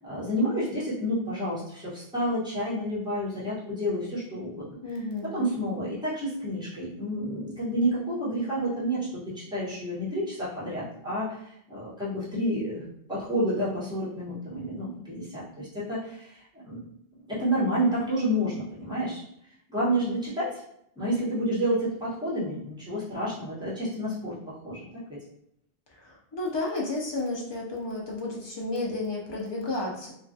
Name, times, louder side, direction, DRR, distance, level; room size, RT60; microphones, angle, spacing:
voice 1, 0.0-4.8 5.3-16.8 17.3-19.2 19.7-20.6 21.0-24.8, equal, 5° right, -10 dB, 1.0 m, -29 dB
voice 2, 4.8-5.5 26.1-30.1, left 2 dB, 45° left, -3 dB, 0.3 m, -32 dB
2.3 x 2.3 x 2.5 m, 0.75 s
omnidirectional pair, 1.1 m